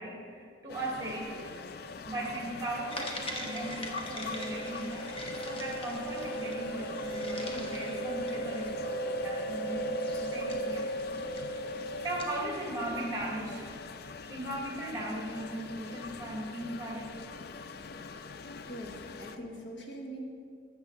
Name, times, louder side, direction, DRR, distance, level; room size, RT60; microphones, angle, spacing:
voice 1, 0.0-1.8 2.1-9.9 10.2-10.9 11.4-11.8 12.0-13.7 14.3-17.1, right 1 dB, 20° right, -2 dB, 2.1 m, -38 dB
sound 1, 0.7-19.4, left 4 dB, 60° left, 0.4 m, -44 dB
sound 2, 2.9-12.4, right 1 dB, 30° left, 1.1 m, -36 dB
voice 2, 18.7-20.2, right 1 dB, 90° left, 0 dB, 1.6 m, -42 dB
14.0 x 7.2 x 4.0 m, 2.3 s
head